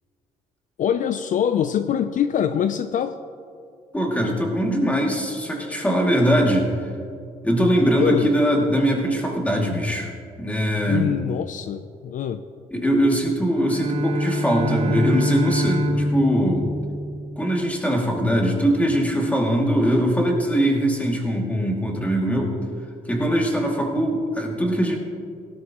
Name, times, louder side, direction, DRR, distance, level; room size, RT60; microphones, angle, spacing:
voice 1, 0.8-3.2 8.0-8.3 10.9-12.4, left 9 dB, 55° left, 10 dB, 0.5 m, -24 dB
voice 2, 3.9-6.9 7.4-10.1 10.4-11.2 12.7-16.7 17.4-22.6 23.1-25.0, equal, 10° left, -1 dB, 2.5 m, -21 dB
Bowed string instrument, 13.5-17.6, equal, 45° right, 2.9 m, -25 dB
17.5 x 12.5 x 3.0 m, 2.4 s
cardioid pair, 100°, 15 cm